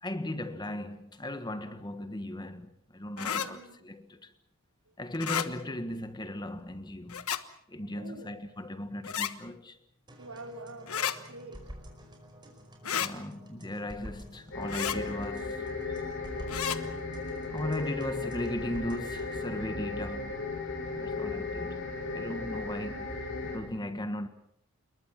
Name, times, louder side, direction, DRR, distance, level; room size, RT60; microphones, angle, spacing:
voice 1, 0.0-4.3 5.0-7.3 7.7-9.8 12.9-16.0 17.5-20.4 20.9-21.8 22.1-24.3, left 1 dB, 20° left, 1.5 m, -37 dB
sound 1, 3.2-3.5 5.1-5.5 7.1-7.4 9.0-9.3 10.9-11.2 12.8-13.1 14.7-15.0 16.5-16.8, left 9 dB, 85° left, 1.3 m, -31 dB
voice 2, 3.2-3.8 7.9-8.3 10.2-11.6 21.9-22.1, right 2 dB, 85° right, 5.0 m, -46 dB
sound 2, 10.1-19.5, equal, 20° right, 5.0 m, -50 dB
sound 3, 14.5-23.6, left 3 dB, 55° left, 7.6 m, -36 dB
28.5 x 22.5 x 6.0 m
head